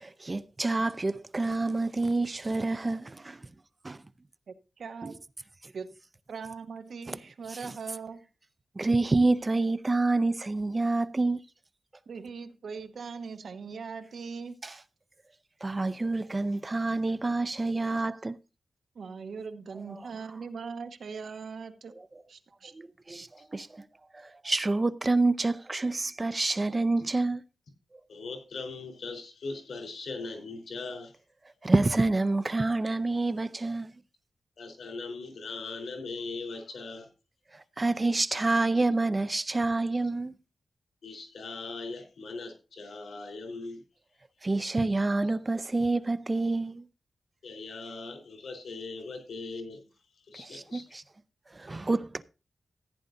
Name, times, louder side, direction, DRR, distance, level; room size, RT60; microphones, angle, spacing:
voice 1, 0.3-3.4 3.8-4.0 5.0-5.1 7.1-7.2 8.8-11.4 14.6-14.7 15.6-18.4 23.1-23.3 23.5-23.7 24.1-27.4 31.6-33.9 37.8-40.4 44.4-46.8 50.4-51.0 51.6-52.2, right 2 dB, 25° right, 0.4 m, -27 dB
voice 2, 4.5-5.2 5.7-5.9 6.3-8.2 12.1-14.5 18.9-21.9 22.3-22.7, right 5 dB, 75° right, 1.0 m, -40 dB
voice 3, 28.1-31.1 34.6-37.1 41.0-43.8 47.4-49.8 50.3-50.9, left 3 dB, 85° left, 3.7 m, -39 dB
15.0 x 9.7 x 2.6 m
wide cardioid pair, 140°, 0 cm